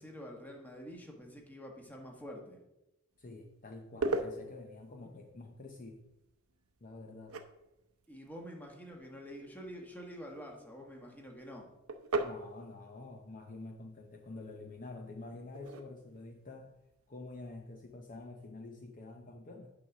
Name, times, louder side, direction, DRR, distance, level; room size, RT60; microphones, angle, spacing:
voice 1, 0.0-2.6 8.1-11.7, equal, 10° left, 1 dB, 1.3 m, -47 dB
sound 1, 3.1-18.3, right 3 dB, 85° right, 0.7 m, -43 dB
voice 2, 3.2-6.0 6.8-7.4 12.2-16.7 17.1-19.7, left 2 dB, 40° left, 3 dB, 0.7 m, -48 dB
9.1 x 4.1 x 5.9 m, 0.94 s
head